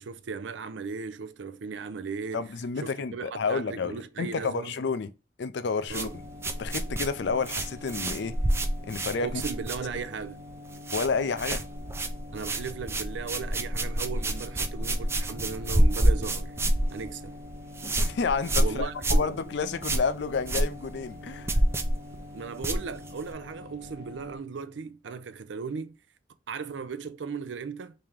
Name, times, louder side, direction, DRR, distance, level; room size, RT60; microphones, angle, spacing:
voice 1, 0.0-2.4 2.8-4.7 5.9-6.1 9.2-10.4 12.3-16.6 16.9-17.3 18.6-19.3 22.3-25.9 26.5-27.9, right 5 dB, 90° right, 0.5 m, -37 dB
voice 2, 2.3-5.1 5.4-6.2 6.6-8.4 8.9-9.4 10.9-11.6 18.0-21.5, left 4 dB, 75° left, 0.4 m, -30 dB
sound 1, 5.9-10.2 10.5-11.1 11.4-23.3, right 1 dB, 15° right, 0.4 m, -28 dB
sound 2, 5.9-24.4, left 1 dB, 50° right, 0.8 m, -45 dB
3.3 x 2.9 x 3.5 m
head